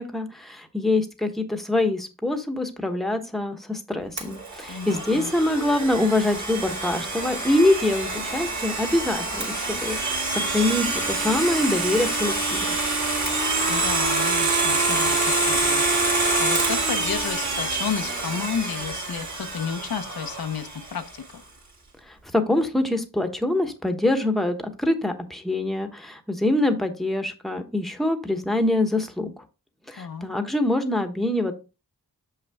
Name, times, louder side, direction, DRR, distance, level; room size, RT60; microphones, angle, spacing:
voice 1, 0.0-12.7 22.1-29.3 29.9-31.5, left 1 dB, ahead, 1.1 m, -24 dB
Domestic sounds home sounds, 4.2-20.9, right 2 dB, 50° right, 2.4 m, -26 dB
voice 2, 4.7-5.3 13.7-15.8 16.4-21.4 30.0-30.3, left 7 dB, 80° left, 0.9 m, -32 dB
6.6 x 5.6 x 3.5 m
wide cardioid pair, 75°, 36 cm